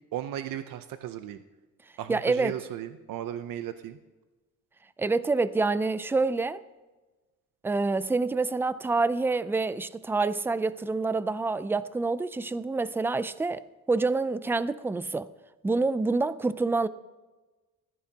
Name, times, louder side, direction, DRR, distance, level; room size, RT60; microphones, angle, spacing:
voice 1, 0.1-1.4 2.0-4.0, right 11 dB, 85° right, 0.7 m, -35 dB
voice 2, 2.1-2.6 5.0-6.6 7.6-15.3 15.6-16.9, right 3 dB, 5° right, 0.4 m, -27 dB
21.0 x 14.0 x 2.9 m
cardioid pair, 125°, 32 cm